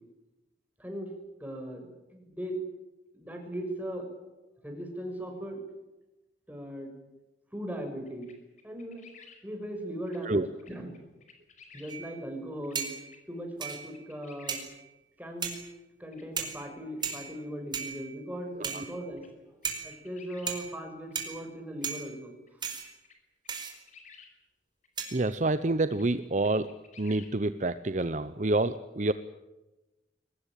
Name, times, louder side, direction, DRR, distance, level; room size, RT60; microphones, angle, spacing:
voice 1, 0.8-1.1 1.4-2.6 3.1-4.0 4.6-5.6 6.5-6.9 7.5-8.3 8.6-9.0 9.4-10.4 10.7-10.9 11.7-12.9 13.3-14.6 15.2-15.5 16.0-19.2 19.8-22.3, equal, 10° right, 3 dB, 6.3 m, -38 dB
sound 1, 8.1-9.4 10.1-10.2 10.6-11.9 12.6-12.8 13.0-13.2 13.6-14.6 15.5-15.6 16.1-16.2 17.0-17.1 17.8-17.9 19.2-19.3 19.6-20.5 21.1-21.2 21.8-21.9 22.5-22.6 23.0-23.2 23.4-24.3 24.8-24.9 25.2-25.3 25.9-26.0 26.4-27.3, left 5 dB, 45° left, 5.1 m, -54 dB
sound 2, 11.9-12.3 12.7-13.2 13.6-14.1 14.5-14.9 15.4-15.7 16.4-16.7 17.0-17.5 17.7-18.2 18.6-19.1 19.6-20.0 20.5-20.8 21.1-21.5 21.8-22.2 22.6-22.9 23.5-23.7 25.0-25.3, right 6 dB, 25° right, 4.5 m, -37 dB
voice 2, 25.1-26.7 27.0-29.1, right 2 dB, 45° right, 12 dB, 0.8 m, -28 dB
23.0 x 20.0 x 9.1 m, 1.0 s
head